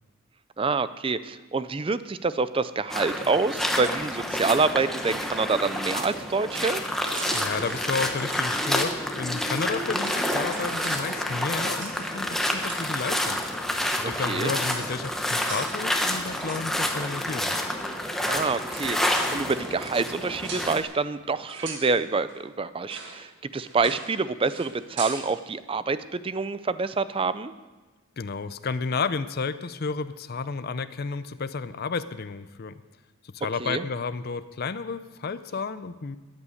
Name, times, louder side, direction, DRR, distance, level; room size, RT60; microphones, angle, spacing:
voice 1, 0.6-6.8 14.0-14.5 18.3-27.5 33.6-33.8, right 4 dB, 25° right, 14 dB, 0.4 m, -27 dB
sound 1, 2.9-20.8, left 1 dB, ahead, 0.9 m, -29 dB
sound 2, 7.0-8.9 9.7-9.8 10.1-14.0 14.2-14.3 14.6-14.9 15.5-17.0 18.2-18.4 18.6-20.8 21.5-21.9 22.3-22.4 22.9-23.2 23.5-24.2 24.4-25.3, right 4 dB, 55° right, 1.9 m, -40 dB
voice 2, 7.3-13.4 14.0-17.6 28.2-32.8 33.2-36.2, left 4 dB, 45° left, 12 dB, 0.5 m, -32 dB
13.5 x 9.9 x 6.4 m, 1.2 s
head